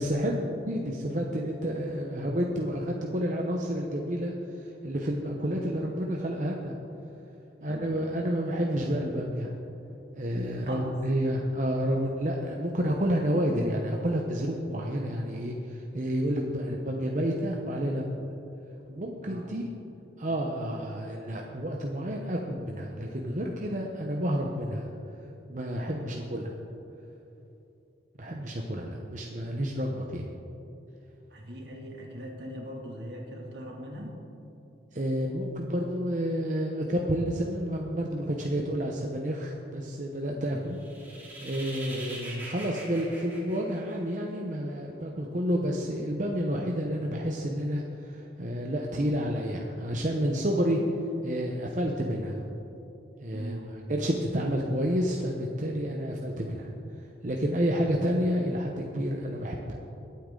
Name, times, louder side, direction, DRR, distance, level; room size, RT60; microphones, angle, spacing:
voice 1, 0.0-6.7 7.6-9.5 10.1-18.3 18.9-19.7 20.2-24.9 25.5-26.6 28.2-30.3 34.9-40.8 41.4-50.8 51.2-52.4 53.2-53.6 53.9-56.7 57.2-59.7, equal, 45° right, 0 dB, 0.9 m, -30 dB
voice 2, 7.6-8.2 10.6-11.0 19.3-19.6 25.9-26.2 31.3-34.2 40.5-40.7 41.9-42.1 48.9-49.1 53.3-53.9 57.7-57.9, equal, 75° right, -1 dB, 2.5 m, -41 dB
sound 1, 40.7-44.3, right 1 dB, 10° right, 2.9 m, -43 dB
22.5 x 8.6 x 3.9 m, 2.9 s
head